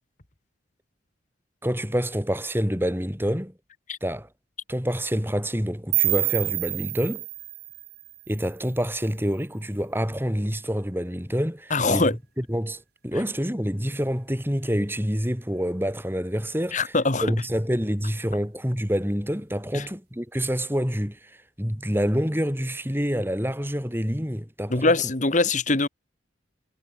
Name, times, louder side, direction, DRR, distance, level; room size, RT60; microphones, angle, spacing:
voice 1, 1.6-3.5 4.0-4.3 4.7-7.2 8.3-16.9 17.2-24.9, equal, 10° right, 7.9 m, -27 dB
sound 1, 5.9-8.9, right 18 dB, 55° right, 1.2 m, -28 dB
voice 2, 11.7-12.1 16.7-17.3 19.7-19.9 24.7-25.9, left 3 dB, 40° left, 1.6 m, -22 dB
head